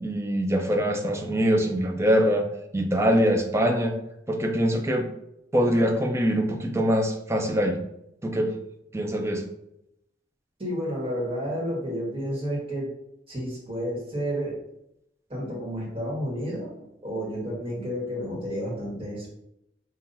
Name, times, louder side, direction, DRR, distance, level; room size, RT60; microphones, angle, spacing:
voice 1, 0.0-2.5 2.7-4.0 4.3-5.1 5.5-7.8 8.2-8.5 8.9-9.4, equal, 15° right, 3 dB, 0.5 m, -23 dB
voice 2, 10.6-12.9 13.3-14.6 15.3-19.3, equal, 30° right, -4 dB, 1.5 m, -31 dB
5.4 x 2.5 x 2.6 m, 0.81 s
head